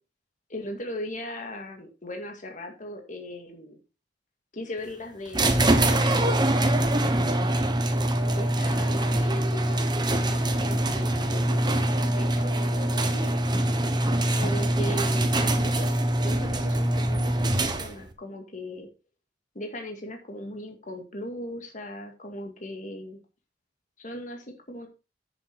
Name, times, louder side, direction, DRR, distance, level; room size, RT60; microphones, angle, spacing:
voice 1, 0.5-3.8 4.5-6.3 8.3-13.4 14.3-18.9 19.5-23.2 24.0-24.9, left 1 dB, 45° left, 3 dB, 2.1 m, -38 dB
sound 1, 5.3-18.1, right 1 dB, 25° right, 1.1 m, -24 dB
10.0 x 7.0 x 4.2 m, 0.30 s
head